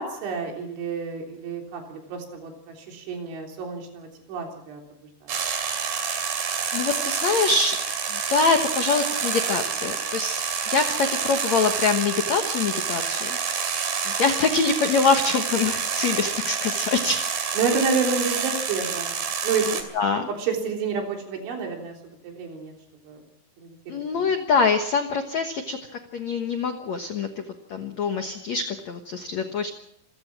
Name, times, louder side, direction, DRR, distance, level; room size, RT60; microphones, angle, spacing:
voice 1, 0.0-4.8 5.2-5.4 17.6-20.0 20.4-22.0 22.2-22.7 23.1-23.2 23.6-24.3, right 5 dB, 85° right, 2 dB, 6.0 m, -29 dB
sound 1, 5.3-19.8, right 6 dB, 50° right, 3.8 m, -28 dB
voice 2, 6.7-7.8 8.1-10.4 10.7-13.4 14.0-17.2 19.9-20.3 23.9-25.8 26.1-27.4 27.7-29.7, left 4 dB, 75° left, 5 dB, 1.6 m, -24 dB
27.0 x 16.0 x 6.1 m, 0.75 s
omnidirectional pair, 5.3 m